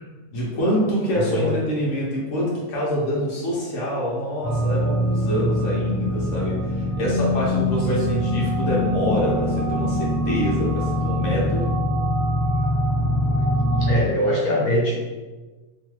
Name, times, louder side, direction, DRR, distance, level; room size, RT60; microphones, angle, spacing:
voice 1, 0.3-11.8, equal, 60° left, -4 dB, 1.1 m, -26 dB
voice 2, 1.2-1.6 7.8-8.2 13.4-13.5 13.8-15.1, equal, 80° left, -3 dB, 1.1 m, -23 dB
sound 1, 4.4-13.9, left 1 dB, 30° right, 0.6 m, -23 dB
3.1 x 2.3 x 3.0 m, 1.3 s
omnidirectional pair, 1.6 m